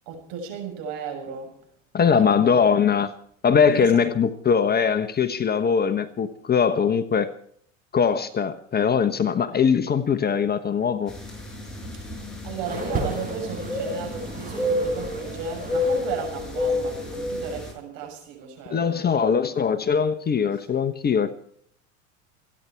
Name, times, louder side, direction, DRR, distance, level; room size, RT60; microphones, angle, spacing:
voice 1, 0.1-1.6 2.1-2.6 3.6-4.0 12.2-19.6, right 5 dB, 55° right, 3 dB, 6.8 m, -34 dB
voice 2, 1.9-3.1 3.4-7.3 7.9-11.1 18.7-21.3, left 6 dB, 25° left, 9 dB, 1.1 m, -21 dB
sound 1, 11.1-17.7, left 2 dB, ahead, 6.8 m, -30 dB
sound 2, 12.6-16.1 16.3-17.2 18.0-18.1, right 4 dB, 20° right, 6.5 m, -36 dB
28.5 x 9.9 x 4.6 m, 0.62 s
hypercardioid pair, 90°, 40 cm